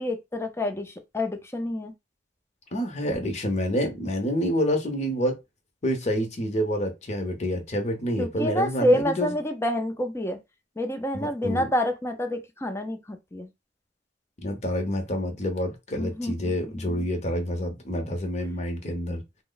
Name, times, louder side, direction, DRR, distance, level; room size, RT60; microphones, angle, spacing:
voice 1, 0.0-1.9 8.2-10.4 10.8-13.5 16.0-17.1, left 1 dB, 15° left, 0.6 m, -28 dB
voice 2, 2.7-5.4 5.8-9.4 11.1-11.6 14.4-19.2, equal, 40° left, 0.8 m, -28 dB
3.0 x 2.1 x 3.9 m
head